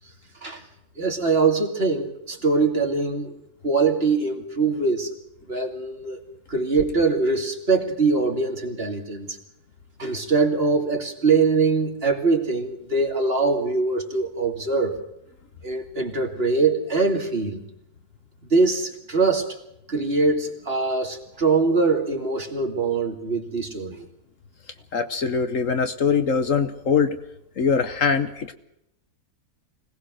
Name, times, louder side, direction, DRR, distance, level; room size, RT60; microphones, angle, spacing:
voice 1, 1.0-3.3 3.6-5.1 5.5-6.2 6.5-9.4 10.0-15.0 15.6-17.6 18.5-19.6 19.9-24.0, right 4 dB, 40° right, 3 dB, 2.8 m, -23 dB
voice 2, 24.9-27.2 27.6-28.5, left 5 dB, 55° left, 10 dB, 1.3 m, -22 dB
25.0 x 18.5 x 6.4 m, 0.81 s
omnidirectional pair, 1.7 m